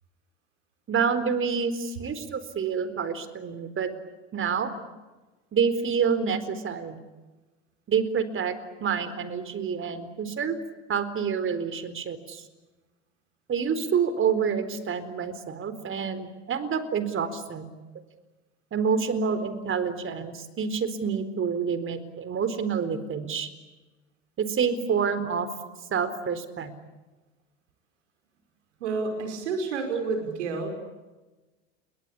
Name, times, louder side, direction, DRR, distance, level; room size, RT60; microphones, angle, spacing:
voice 1, 0.9-3.9 4.3-4.7 5.5-7.0 7.9-10.6 10.9-12.4 13.5-17.7 18.7-23.5 24.4-25.5 25.9-26.7, right 6 dB, 35° right, 12 dB, 4.3 m, -28 dB
voice 2, 28.8-30.7, right 4 dB, 75° right, 5 dB, 5.4 m, -29 dB
29.5 x 23.5 x 8.5 m, 1.2 s
hypercardioid pair, 80°, 36 cm